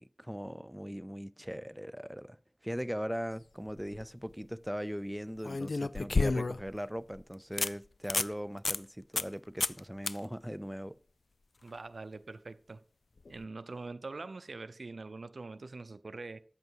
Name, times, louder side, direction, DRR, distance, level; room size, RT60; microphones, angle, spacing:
voice 1, 0.0-2.4 2.6-11.0, equal, 5° right, 0.5 m, -39 dB
sound 1, 3.7-4.0 5.4-6.7 7.2-7.3 7.6-7.7 8.0-8.3 8.7-8.8 9.2-9.3 9.6-9.8 10.1-10.2 13.3-13.4, left 3 dB, 80° left, 0.4 m, -30 dB
voice 2, 11.6-12.8 13.3-16.4, right 3 dB, 85° right, 0.6 m, -44 dB
10.5 x 8.0 x 4.7 m
wide cardioid pair, 55°, 0 cm